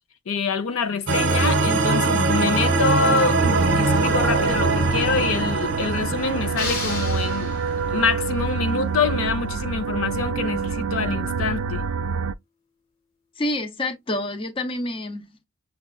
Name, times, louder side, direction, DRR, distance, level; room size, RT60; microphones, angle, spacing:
voice 1, 0.3-7.5 7.9-11.8, left 4 dB, 85° left, 0.6 m, -25 dB
sound 1, 1.1-8.1, right 3 dB, 60° right, 0.8 m, -22 dB
sound 2, 3.4-12.3, right 5 dB, 90° right, 0.3 m, -27 dB
sound 3, 6.6-8.1, left 3 dB, 45° left, 1.2 m, -33 dB
voice 2, 13.4-15.4, left 1 dB, 25° left, 0.5 m, -28 dB
6.3 x 2.3 x 2.3 m
head